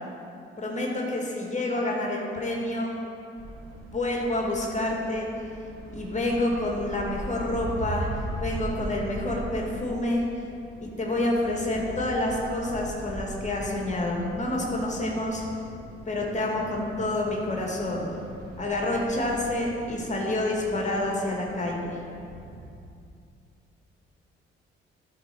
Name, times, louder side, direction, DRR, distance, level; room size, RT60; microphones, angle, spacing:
voice 1, 0.6-3.0 3.9-5.3 5.9-8.1 8.4-10.2 10.8-15.4 16.1-18.1 18.6-22.0, left 1 dB, 25° left, -1 dB, 2.1 m, -28 dB
sound 1, 3.3-22.7, right 1 dB, 60° right, 2.0 m, -40 dB
12.0 x 4.4 x 6.1 m, 2.5 s
figure-of-eight pair, 40°, 30 cm